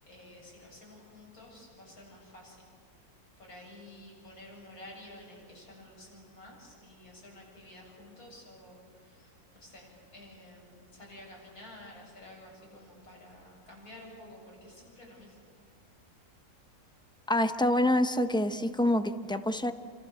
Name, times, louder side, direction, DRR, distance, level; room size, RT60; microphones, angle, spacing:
voice 1, 0.1-2.6 2.9-15.4, left 1 dB, 65° left, -2 dB, 8.5 m, -51 dB
voice 2, 17.3-19.7, left 1 dB, 5° left, 9 dB, 0.6 m, -26 dB
29.0 x 26.5 x 7.0 m, 2.1 s
omnidirectional pair, 1.6 m